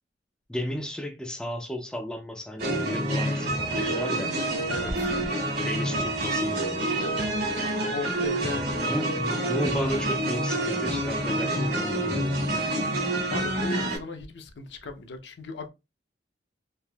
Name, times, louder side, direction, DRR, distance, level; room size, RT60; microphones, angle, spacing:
voice 1, 0.5-4.4 5.6-7.0 8.5-8.6 8.8-12.9, equal, 5° left, 0.3 m, -34 dB
sound 1, 2.6-14.0, right 1 dB, 60° right, 1.3 m, -27 dB
voice 2, 4.7-5.2 7.9-9.0 13.3-15.7, left 2 dB, 75° left, 0.5 m, -36 dB
3.4 x 2.5 x 2.2 m
head